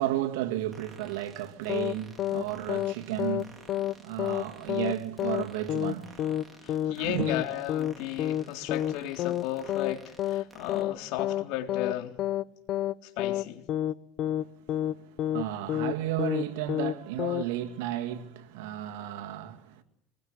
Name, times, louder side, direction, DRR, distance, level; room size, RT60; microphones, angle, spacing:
voice 1, 0.0-7.3 14.8-19.8, right 13 dB, 90° right, 2.5 m, -34 dB
sound 1, 0.7-10.8, right 2 dB, 10° right, 4.5 m, -54 dB
sound 2, 1.7-2.4 2.7-2.9 3.2-3.4 3.7-3.9 4.2-4.4 4.7-4.9 5.2-5.4 5.7-5.9 6.2-6.4 6.7-6.9 7.2-7.4 7.7-7.9 8.2-8.4 8.7-8.9 9.2-9.4 9.7-9.9 10.2-10.4 10.7-10.9 11.2-11.4 11.7-11.9 12.2-12.4 12.7-12.9 13.2-13.4 13.7-13.9 14.2-14.4 14.7-14.9 15.2-15.4 15.7-16.4 16.7-16.9 17.2-17.4, left 12 dB, 50° left, 1.0 m, -29 dB
voice 2, 6.6-12.2 13.0-13.7, left 12 dB, 75° left, 3.6 m, -35 dB
25.5 x 21.5 x 10.0 m
supercardioid pair, 125°, 0 cm